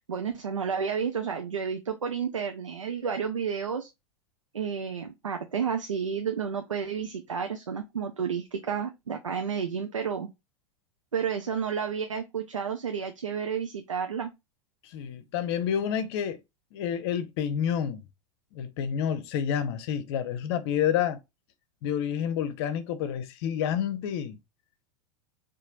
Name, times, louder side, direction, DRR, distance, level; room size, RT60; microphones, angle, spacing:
voice 1, 0.0-3.9 4.5-10.3 11.1-14.3, right 6 dB, 85° right, 0.5 m, -31 dB
voice 2, 14.8-16.4 16.7-18.0 18.5-21.2 21.8-24.4, left 9 dB, 55° left, 0.7 m, -29 dB
4.3 x 2.6 x 2.4 m
figure-of-eight pair, 90°, 16 cm